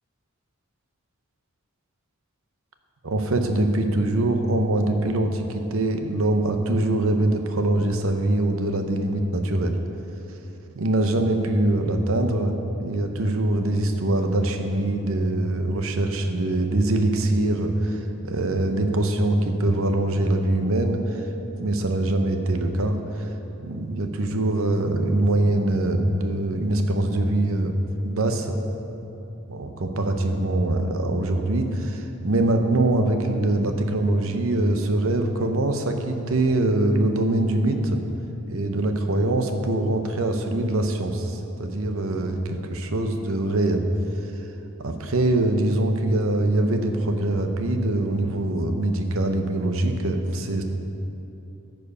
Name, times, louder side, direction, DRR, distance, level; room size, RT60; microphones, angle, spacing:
voice 1, 3.0-9.8 10.8-21.2 21.6-23.3 23.6-27.8 28.0-28.6 29.5-38.0 38.5-43.8 44.8-50.6, right 1 dB, 70° right, 6 dB, 0.8 m, -23 dB
13.5 x 4.7 x 5.4 m, 2.9 s
head